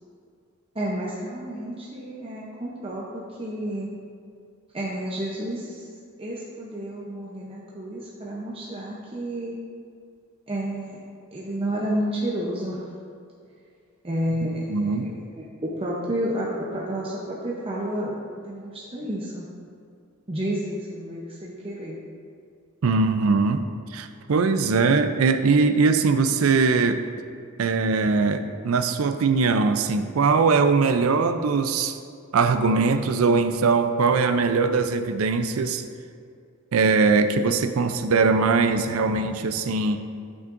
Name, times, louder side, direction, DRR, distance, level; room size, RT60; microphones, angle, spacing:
voice 1, 0.7-3.9 4.7-5.8 6.2-9.6 10.5-11.0 11.3-12.8 14.0-19.5 20.3-22.0, right 1 dB, 25° right, -5 dB, 0.7 m, -30 dB
voice 2, 14.7-15.1 22.8-27.1 27.6-32.0 32.3-35.8 36.7-40.0, right 4 dB, 80° right, 9 dB, 0.5 m, -21 dB
10.5 x 6.2 x 2.5 m, 2.3 s
head